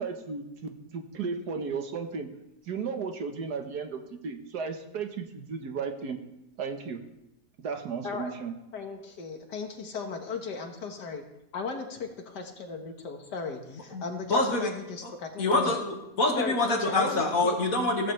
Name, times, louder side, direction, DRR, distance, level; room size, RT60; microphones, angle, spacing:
voice 1, 0.0-2.3 2.7-6.2 6.6-7.0 7.6-8.5, right 5 dB, 70° right, 6 dB, 1.7 m, -34 dB
voice 2, 8.7-11.2 11.5-15.8 16.4-17.6, left 5 dB, 80° left, 4 dB, 2.0 m, -36 dB
voice 3, 13.9-14.7 15.0-15.1 15.4-18.1, left 2 dB, 55° left, 2 dB, 2.2 m, -26 dB
15.0 x 14.5 x 3.3 m, 0.89 s
omnidirectional pair, 1.8 m